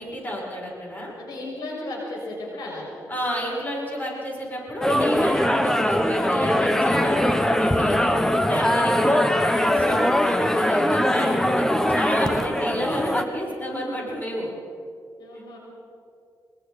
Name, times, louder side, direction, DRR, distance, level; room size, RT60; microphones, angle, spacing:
voice 1, 0.0-1.1 3.1-8.0 8.5-11.5 11.7-14.5, equal, 25° left, -3 dB, 7.4 m, -30 dB
voice 2, 1.2-2.9 15.2-15.6, left 2 dB, 90° left, -3 dB, 6.5 m, -34 dB
sound 1, 4.8-13.2, left 1 dB, 5° left, 1.3 m, -21 dB
25.5 x 23.5 x 4.4 m, 2.4 s
cardioid pair, 95°, 7 cm